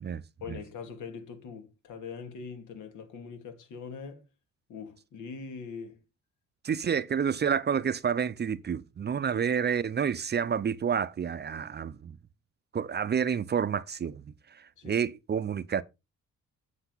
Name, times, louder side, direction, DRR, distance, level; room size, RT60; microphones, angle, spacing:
voice 1, 0.4-4.2 4.7-6.0 9.3-9.4 14.8-15.0, left 5 dB, 75° left, 2.5 m, -42 dB
voice 2, 6.6-12.2 12.7-15.8, right 7 dB, 35° right, 0.6 m, -29 dB
8.1 x 7.8 x 4.0 m
cardioid pair, 90°, 30 cm